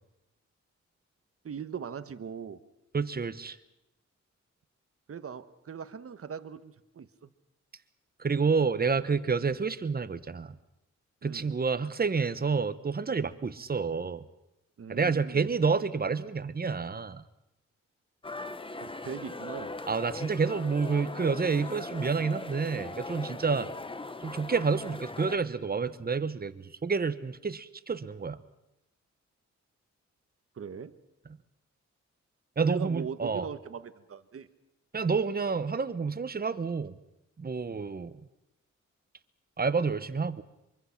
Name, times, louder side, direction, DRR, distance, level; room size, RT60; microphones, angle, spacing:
voice 1, 1.4-2.6 5.1-7.3 11.2-11.5 14.8-15.5 18.8-19.8 23.5-23.7 30.6-31.0 32.6-34.5, right 7 dB, 50° right, 12 dB, 1.2 m, -40 dB
voice 2, 2.9-3.6 8.2-10.5 11.2-14.2 14.9-17.2 19.9-23.7 24.2-28.4 32.6-33.5 34.9-36.9 37.4-38.1 39.6-40.4, right 5 dB, 30° right, 14 dB, 1.1 m, -29 dB
sound 1, 18.2-25.4, left 2 dB, 20° left, 0.9 m, -40 dB
24.5 x 23.5 x 5.9 m, 0.89 s
cardioid pair, 100°, 29 cm